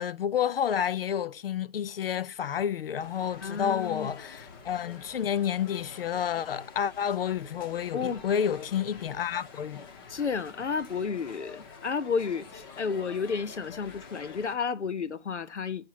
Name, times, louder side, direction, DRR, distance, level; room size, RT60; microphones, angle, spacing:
voice 1, 0.0-9.9, left 8 dB, 55° left, 0.5 m, -30 dB
sound 1, 3.0-14.6, left 5 dB, 20° left, 0.8 m, -48 dB
voice 2, 3.4-4.1 7.9-8.2 10.1-15.9, left 5 dB, 80° left, 1.1 m, -32 dB
9.5 x 4.9 x 5.8 m
hypercardioid pair, 150°, 34 cm